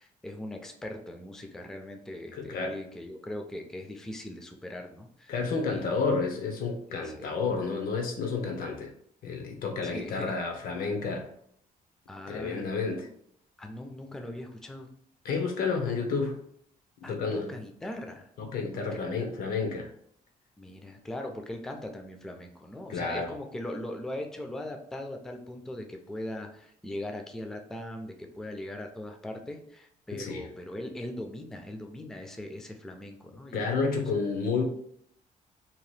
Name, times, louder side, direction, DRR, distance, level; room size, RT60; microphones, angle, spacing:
voice 1, 0.0-5.3 5.7-6.0 6.9-7.4 9.8-10.4 12.1-12.8 13.6-14.9 17.0-18.3 18.9-19.1 20.6-33.7 34.0-34.1, left 1 dB, 5° left, 4 dB, 0.3 m, -40 dB
voice 2, 2.4-2.7 5.3-8.9 9.2-11.3 12.3-13.1 15.2-16.4 17.0-17.5 18.4-19.9 22.9-23.3 30.1-30.5 33.5-34.6, left 4 dB, 75° left, 3 dB, 0.7 m, -30 dB
2.8 x 2.3 x 3.2 m, 0.68 s
cardioid pair, 135°, 15 cm